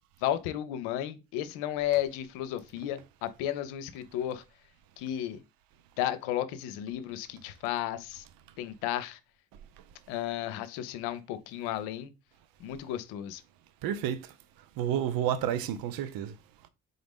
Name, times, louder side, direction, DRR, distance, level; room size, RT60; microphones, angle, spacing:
voice 1, 0.2-4.4 5.0-5.4 6.0-8.2 8.6-9.2 10.1-12.1 12.6-13.4, left 12 dB, 75° left, 0.6 m, -33 dB
voice 2, 13.8-14.3 14.8-16.3, right 10 dB, 55° right, 0.6 m, -30 dB
3.9 x 3.8 x 3.5 m
hypercardioid pair, 45°, 41 cm